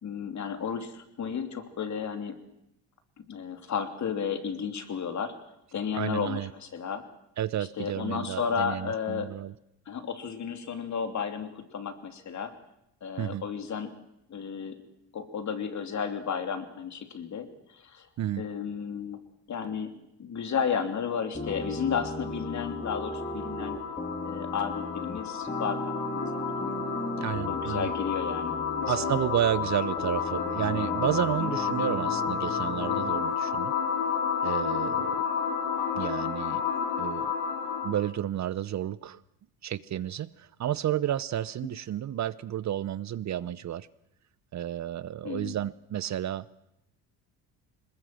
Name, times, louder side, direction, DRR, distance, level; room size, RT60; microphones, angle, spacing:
voice 1, 0.0-2.3 3.3-5.3 5.7-7.0 7.8-9.3 9.9-12.5 13.0-13.9 14.3-14.7 15.1-18.1 18.4-19.2 19.5-19.9 20.2-23.8 24.2-26.8 27.5-29.2 31.4-31.5 41.6-41.7 45.2-45.5, left 7 dB, 45° left, 7 dB, 3.1 m, -33 dB
voice 2, 5.9-6.5 7.4-9.5 13.2-13.4 18.2-18.4 27.2-27.9 28.9-33.7 34.4-35.2 35.9-36.6 37.0-37.3 37.8-39.2 39.6-43.9 44.5-46.5, right 11 dB, 45° right, 17 dB, 0.7 m, -31 dB
sound 1, 21.3-33.2, left 1 dB, 20° left, 2.9 m, -36 dB
sound 2, 21.4-38.1, left 7 dB, 85° left, 3.1 m, -31 dB
21.0 x 20.5 x 7.7 m, 0.82 s
supercardioid pair, 90°, 40 cm